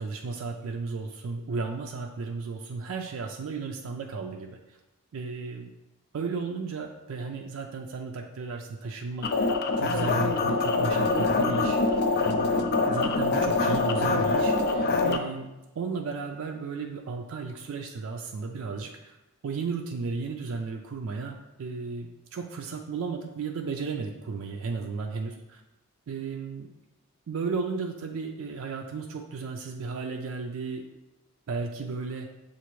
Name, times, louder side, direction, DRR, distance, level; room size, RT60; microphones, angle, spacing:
voice 1, 0.0-4.6 5.1-5.7 6.1-9.4 9.8-11.8 12.2-15.5 15.7-19.2 19.4-25.6 26.1-26.7 27.3-30.9 31.5-32.3, right 4 dB, 70° right, 2 dB, 0.4 m, -34 dB
sound 1, 9.2-15.2, left 3 dB, 45° left, 0.3 m, -24 dB
6.8 x 2.5 x 3.0 m, 0.98 s
head